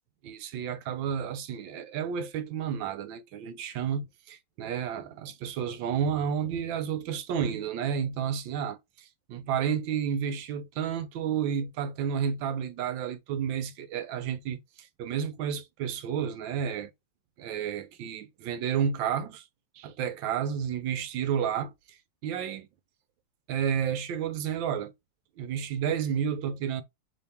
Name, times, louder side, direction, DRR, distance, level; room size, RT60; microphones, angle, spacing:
voice 1, 0.2-16.9 17.4-19.4 19.8-21.7 22.2-22.7 23.5-24.9 25.4-26.8, right 8 dB, 85° right, 1.4 m, -31 dB
3.4 x 3.4 x 4.1 m
omnidirectional pair, 2.0 m